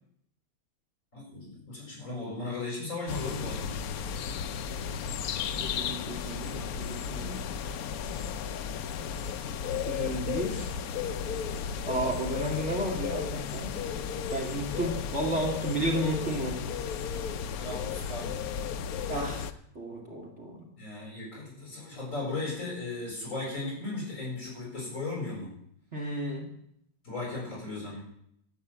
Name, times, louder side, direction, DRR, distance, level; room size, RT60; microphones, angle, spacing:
voice 1, 1.1-3.7 17.6-18.4 20.8-25.5 27.0-28.0, left 3 dB, 45° left, -3 dB, 7.8 m, -36 dB
sound 1, 3.1-19.5, left 7 dB, 65° left, 1.1 m, -34 dB
voice 2, 5.6-7.5 9.0-9.2 9.9-10.7 11.9-13.8 14.3-16.6 19.1-19.5 19.7-20.7 25.9-26.5, right 1 dB, 40° right, 1 dB, 2.6 m, -33 dB
13.0 x 8.4 x 8.7 m, 0.72 s
omnidirectional pair, 1.8 m